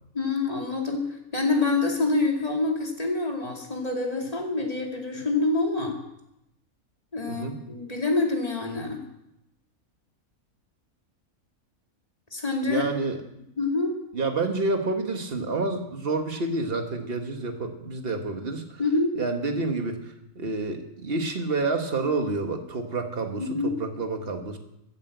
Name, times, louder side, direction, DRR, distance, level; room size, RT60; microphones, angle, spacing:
voice 1, 0.1-6.0 7.1-9.0 12.3-12.8 13.6-14.0 18.8-19.1 23.4-23.7, left 3 dB, 25° left, 0 dB, 2.6 m, -26 dB
voice 2, 12.6-13.2 14.1-18.8 19.1-24.6, right 3 dB, 40° right, 5 dB, 1.7 m, -29 dB
14.5 x 8.8 x 8.0 m, 0.84 s
omnidirectional pair, 1.5 m